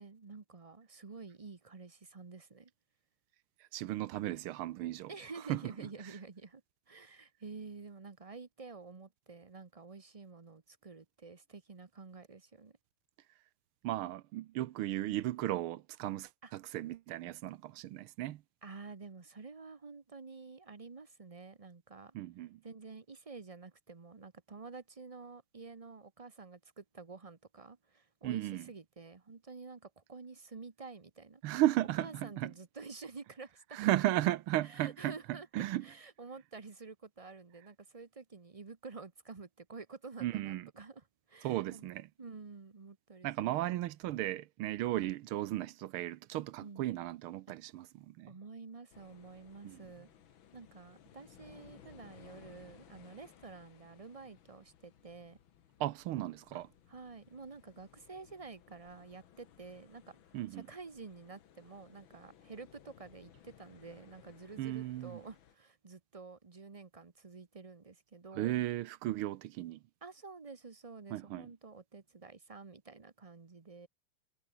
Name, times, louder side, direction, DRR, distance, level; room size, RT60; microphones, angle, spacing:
voice 1, 0.0-2.7 5.1-6.6 6.9-12.8 16.4-16.5 18.6-22.2 22.6-31.4 32.0-34.0 34.6-41.9 42.2-43.8 46.6-46.9 47.5-47.6 48.3-50.1 50.5-55.4 56.5-56.6 56.9-60.2 60.5-68.6 70.0-73.9, right 4 dB, 40° right, 0.5 m, -50 dB
voice 2, 3.7-5.1 5.5-5.6 13.8-18.4 22.1-22.6 28.2-28.7 31.4-32.5 33.7-35.1 35.5-35.9 40.2-40.7 41.4-42.1 43.2-48.3 49.6-49.8 55.8-56.7 60.3-60.7 64.6-65.2 68.3-69.8 71.1-71.5, right 14 dB, 85° right, 1.6 m, -35 dB
sound 1, 48.9-65.6, left 9 dB, 65° left, 2.1 m, -61 dB
omnidirectional pair, 2.3 m